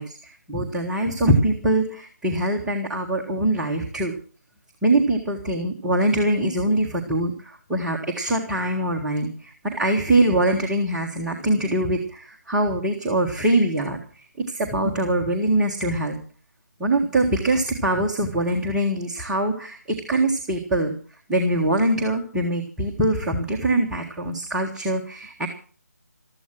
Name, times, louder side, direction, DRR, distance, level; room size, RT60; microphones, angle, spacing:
voice 1, 0.0-4.1 4.8-16.2 16.8-20.9 21.3-25.5, right 1 dB, 5° right, -6 dB, 1.6 m, -23 dB
15.0 x 13.5 x 6.2 m, 0.41 s
figure-of-eight pair, 150°, 9 cm